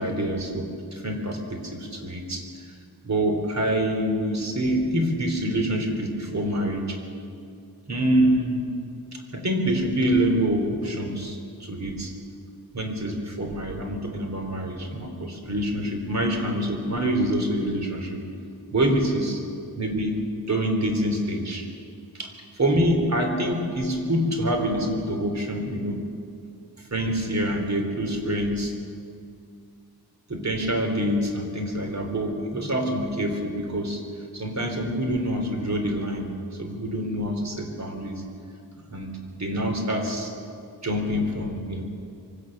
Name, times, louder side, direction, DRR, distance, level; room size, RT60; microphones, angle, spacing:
voice 1, 0.0-2.4 3.0-7.0 7.9-8.7 9.3-12.1 12.7-18.2 18.7-19.4 19.7-20.2 20.5-21.7 22.2-22.3 22.6-26.0 26.9-28.7 30.3-34.0 34.3-36.3 36.6-38.2 38.9-40.3 40.8-41.8, right 1 dB, 45° right, 4 dB, 3.7 m, -26 dB
23.5 x 17.5 x 6.7 m, 2.4 s
wide cardioid pair, 95°, 39 cm